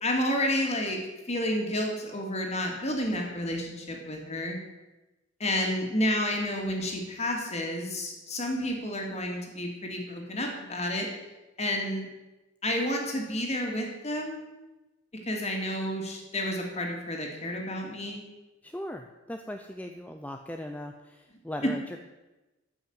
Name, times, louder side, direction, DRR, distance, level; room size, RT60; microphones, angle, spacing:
voice 1, 0.0-1.0 1.3-4.6 5.4-11.1 11.6-12.1 12.6-14.5 15.3-18.2 21.6-21.7, left 1 dB, 35° left, 1 dB, 2.6 m, -30 dB
voice 2, 18.6-22.0, left 1 dB, 10° left, 4 dB, 0.6 m, -39 dB
13.0 x 6.3 x 9.0 m, 1.1 s
head